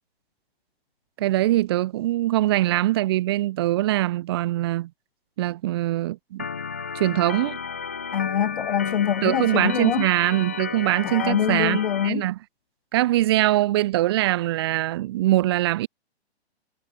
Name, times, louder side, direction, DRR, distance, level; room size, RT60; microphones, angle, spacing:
voice 1, 1.2-4.9 5.4-6.5 6.9-7.6 9.2-12.4 12.9-15.9, right 15 dB, 25° right, 0.9 m, -22 dB
Organ, 6.4-12.1, left 6 dB, 15° left, 0.4 m, -33 dB
voice 2, 8.1-10.1 11.0-12.2, left 9 dB, 50° left, 3.5 m, -24 dB
hypercardioid pair, 170°, 33 cm